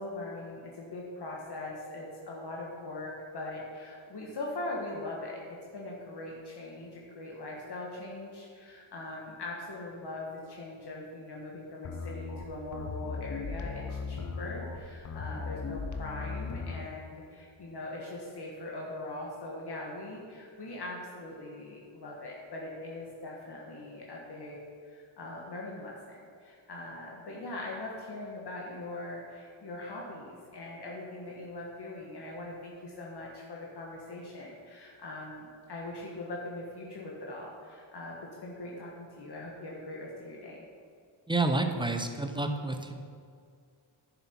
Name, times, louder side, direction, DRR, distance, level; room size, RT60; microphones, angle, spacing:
voice 1, 0.0-5.4 5.7-40.7, left 2 dB, 55° left, -3 dB, 1.5 m, -41 dB
sound 1, 11.8-16.9, left 4 dB, 40° left, 0.8 m, -37 dB
voice 2, 41.3-42.9, right 2 dB, 10° right, 5 dB, 0.7 m, -29 dB
10.0 x 7.1 x 4.4 m, 2.3 s
wide cardioid pair, 120°, 47 cm